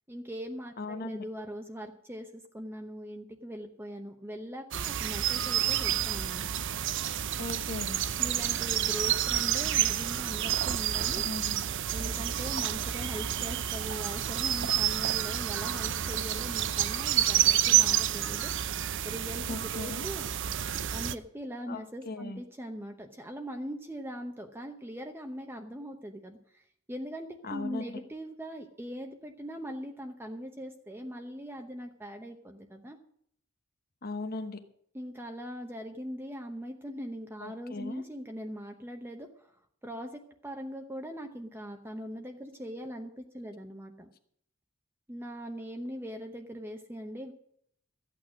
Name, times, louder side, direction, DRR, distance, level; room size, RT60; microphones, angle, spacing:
voice 1, 0.1-6.5 8.2-11.2 11.9-18.5 19.0-20.3 20.9-33.0 34.9-39.5 39.8-44.1 45.1-47.3, equal, 10° right, 4 dB, 0.9 m, -41 dB
voice 2, 0.8-1.2 7.4-8.0 11.1-11.6 19.5-20.1 21.7-22.4 27.4-27.8 34.0-34.6 37.4-38.0, left 3 dB, 45° left, 7 dB, 1.1 m, -38 dB
sound 1, 4.7-21.1, right 11 dB, 60° right, 0.6 m, -29 dB
14.0 x 8.9 x 6.2 m, 0.66 s
head